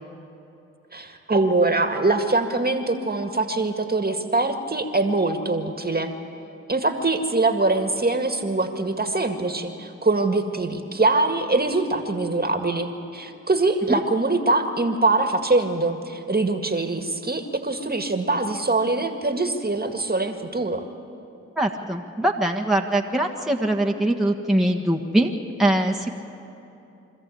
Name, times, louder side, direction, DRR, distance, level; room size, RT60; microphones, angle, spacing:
voice 1, 0.9-6.2 6.7-20.9, right 2 dB, 30° right, 6 dB, 1.9 m, -23 dB
voice 2, 21.5-25.3 25.6-26.2, right 1 dB, ahead, 0 dB, 1.6 m, -22 dB
24.5 x 14.0 x 8.6 m, 2.8 s
supercardioid pair, 45°, 31 cm